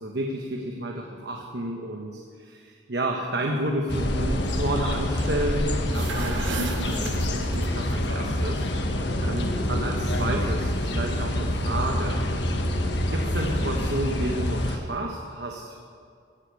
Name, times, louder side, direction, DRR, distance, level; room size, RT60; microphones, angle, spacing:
voice 1, 0.0-12.2 13.0-15.8, right 1 dB, 65° right, 1 dB, 1.2 m, -31 dB
sound 1, 3.9-14.8, left 1 dB, 70° left, 1.4 m, -26 dB
sound 2, 5.8-7.9, right 3 dB, 90° right, 1.1 m, -34 dB
15.0 x 8.2 x 8.3 m, 2.2 s
head